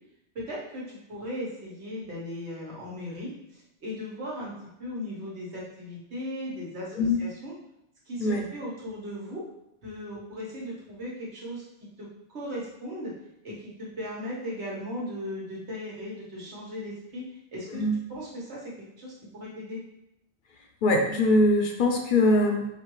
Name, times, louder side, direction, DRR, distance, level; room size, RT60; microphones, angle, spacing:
voice 1, 0.3-4.5 4.8-7.5 8.1-9.4 9.8-11.6 12.0-13.1 13.4-19.8, left 1 dB, 90° right, -5 dB, 1.5 m, -37 dB
voice 2, 20.8-22.7, left 1 dB, 60° left, 1 dB, 0.6 m, -22 dB
5.1 x 2.5 x 3.0 m, 0.84 s
omnidirectional pair, 1.1 m